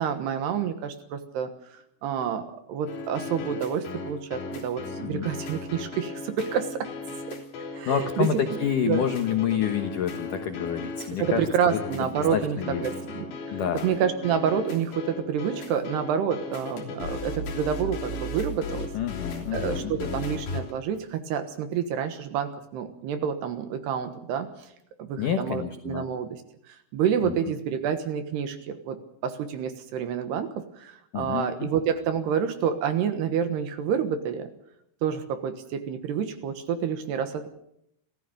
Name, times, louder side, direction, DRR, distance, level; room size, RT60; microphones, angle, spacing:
voice 1, 0.0-1.5 2.0-6.9 7.3-7.4 7.7-9.1 11.2-18.9 19.5-24.7 25.0-26.4 26.7-34.5 35.0-37.5, right 8 dB, 70° right, 9 dB, 3.0 m, -28 dB
sound 1, 2.9-20.7, left 3 dB, 60° left, 5.3 m, -36 dB
voice 2, 7.9-11.8 12.3-12.8 13.5-13.9 18.9-20.2 25.2-26.1 27.2-27.3 31.1-31.7, left 8 dB, 80° left, 7 dB, 1.8 m, -28 dB
26.0 x 15.5 x 6.6 m, 0.76 s
omnidirectional pair, 5.7 m